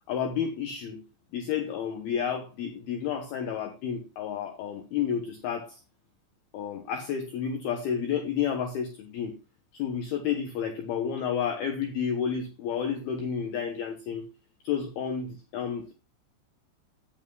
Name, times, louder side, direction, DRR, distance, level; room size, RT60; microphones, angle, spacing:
voice 1, 0.1-1.0 1.3-5.8 6.5-9.3 9.7-14.2 14.6-15.9, left 7 dB, 70° left, 3 dB, 2.8 m, -31 dB
14.0 x 10.0 x 2.3 m, 0.27 s
omnidirectional pair, 5.0 m